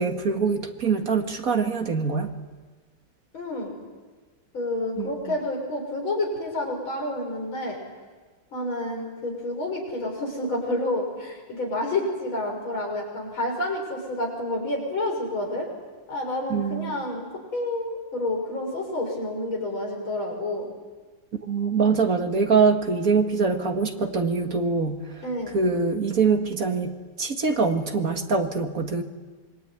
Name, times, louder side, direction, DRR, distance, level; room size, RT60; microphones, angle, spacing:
voice 1, 0.0-2.3 5.0-5.3 16.5-16.9 21.5-25.2 25.5-29.0, right 5 dB, 45° right, 5 dB, 2.2 m, -24 dB
voice 2, 3.3-3.8 4.5-7.8 8.5-15.7 16.1-17.3 17.5-20.7 25.2-25.5, left 1 dB, 80° left, 1 dB, 7.3 m, -29 dB
26.5 x 23.0 x 9.6 m, 1.4 s
omnidirectional pair, 2.2 m